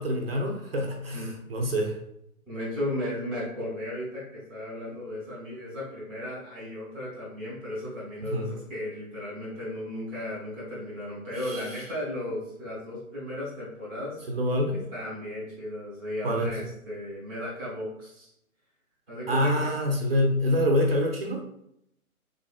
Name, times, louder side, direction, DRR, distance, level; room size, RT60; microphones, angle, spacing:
voice 1, 0.0-2.0 8.3-8.5 11.5-11.6 14.3-14.8 16.2-16.6 19.3-21.4, left 1 dB, 45° right, 1 dB, 0.5 m, -26 dB
voice 2, 2.5-14.2 14.9-18.3 19.1-19.7, left 1 dB, 5° left, -11 dB, 0.6 m, -35 dB
3.6 x 3.3 x 2.3 m, 0.77 s
figure-of-eight pair, 145°, 43 cm